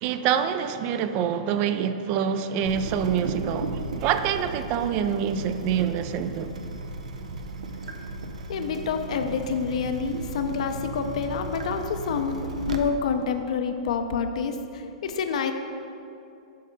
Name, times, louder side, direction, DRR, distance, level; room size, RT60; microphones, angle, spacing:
voice 1, 0.0-6.5, right 8 dB, 40° right, 0.4 m, -26 dB
Water tap faucet / Drip, 2.6-12.8, right 3 dB, 90° right, 0.6 m, -35 dB
voice 2, 8.5-12.3 12.7-14.6 15.0-15.5, left 6 dB, 70° left, 0.6 m, -27 dB
7.5 x 5.4 x 4.0 m
hypercardioid pair, 130°, 4 cm